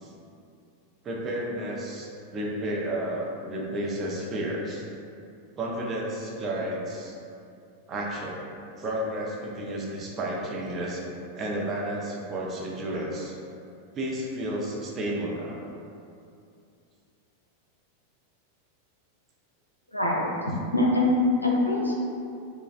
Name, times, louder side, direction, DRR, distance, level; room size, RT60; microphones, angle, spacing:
voice 1, 1.0-4.9 5.6-7.1 7.9-8.4 8.8-11.0 11.3-13.3 13.9-15.6, right 1 dB, 25° right, -3 dB, 0.5 m, -32 dB
voice 2, 19.9-20.3 20.7-21.9, left 2 dB, 85° left, -3 dB, 0.5 m, -23 dB
4.6 x 2.1 x 2.4 m, 2.5 s
figure-of-eight pair, 90°, 0 cm